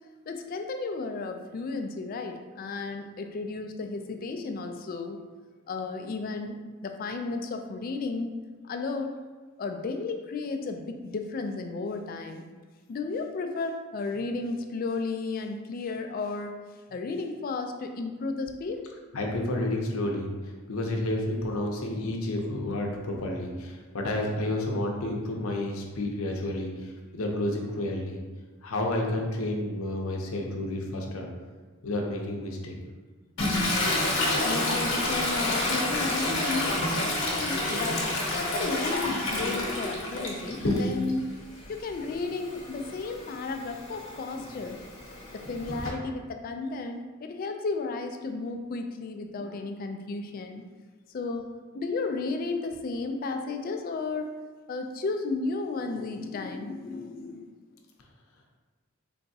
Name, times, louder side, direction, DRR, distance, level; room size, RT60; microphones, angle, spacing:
voice 1, 0.3-5.2 5.7-8.3 8.6-9.2 9.6-12.4 12.9-16.6 16.9-18.8 34.4-41.4 41.7-44.8 45.3-50.6 51.1-51.5 51.7-54.4 54.7-57.5, left 3 dB, 45° left, 6 dB, 0.3 m, -33 dB
voice 2, 19.1-20.3 20.7-28.2 28.6-31.3 31.8-32.7, left 1 dB, 80° left, 1 dB, 0.6 m, -30 dB
Toilet flush, 33.4-41.2 41.6-45.9, left 1 dB, 60° left, 1.0 m, -29 dB
3.9 x 3.4 x 2.7 m, 1.3 s
head